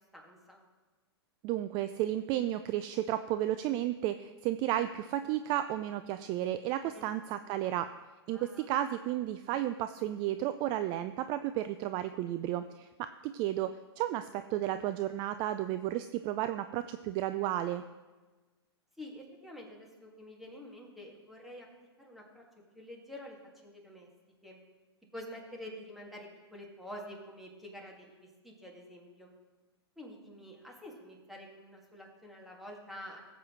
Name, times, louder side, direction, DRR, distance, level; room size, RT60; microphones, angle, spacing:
voice 1, 0.1-0.6 6.8-7.1 8.3-8.7 19.0-21.7 22.0-22.4 22.7-23.4 23.6-24.1 24.4-24.6 25.1-29.3 30.0-33.2, left 1 dB, ahead, -2 dB, 2.2 m, -48 dB
voice 2, 1.4-7.9 8.3-17.8, right 13 dB, 35° right, 11 dB, 0.4 m, -33 dB
17.5 x 7.9 x 3.2 m, 1.2 s
hypercardioid pair, 120°, 14 cm